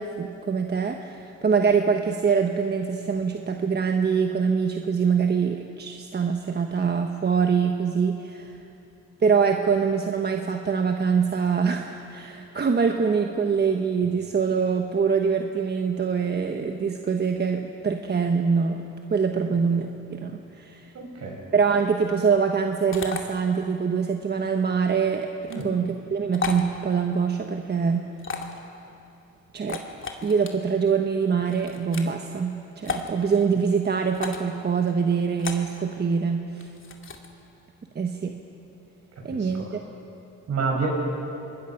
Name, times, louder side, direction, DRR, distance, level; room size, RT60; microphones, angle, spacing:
voice 1, 0.0-8.5 9.2-18.8 19.1-20.9 21.5-28.0 29.5-29.8 30.2-36.7 37.9-38.3 39.2-39.6, right 6 dB, 35° right, 4 dB, 1.2 m, -24 dB
voice 2, 20.9-21.4 25.5-25.7 39.3-39.6 40.5-40.9, right 5 dB, 60° right, 0 dB, 6.3 m, -29 dB
sound 1, 22.9-23.2 25.4-25.6 26.3-26.6 28.2-28.6 29.6-30.5 31.5-32.1 32.8-33.1 34.1-34.5 35.4-35.7 36.6-37.3, left 5 dB, 40° left, 2.3 m, -33 dB
25.5 x 21.0 x 5.9 m, 2.8 s
cardioid pair, 90°, 30 cm